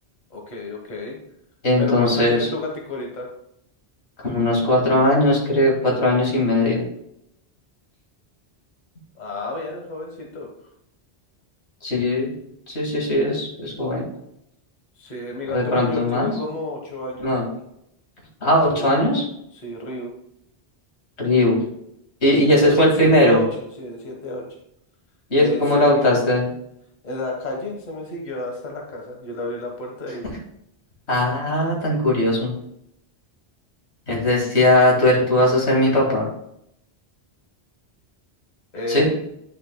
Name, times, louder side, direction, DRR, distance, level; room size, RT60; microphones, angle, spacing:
voice 1, 0.3-1.2 1.8-3.3 9.1-10.5 15.0-17.3 18.4-18.9 19.5-20.1 22.2-24.4 25.4-26.1 27.0-30.3 38.7-39.1, left 1 dB, 40° left, 1 dB, 1.4 m, -30 dB
voice 2, 1.6-2.5 4.2-6.8 11.8-12.3 12.7-14.0 15.5-16.3 17.2-17.4 18.4-19.3 21.2-21.6 22.2-23.4 25.3-26.4 31.1-32.5 34.1-36.2 38.9-39.1, left 1 dB, 90° left, -1 dB, 2.3 m, -19 dB
9.6 x 6.3 x 2.2 m, 0.75 s
omnidirectional pair, 1.1 m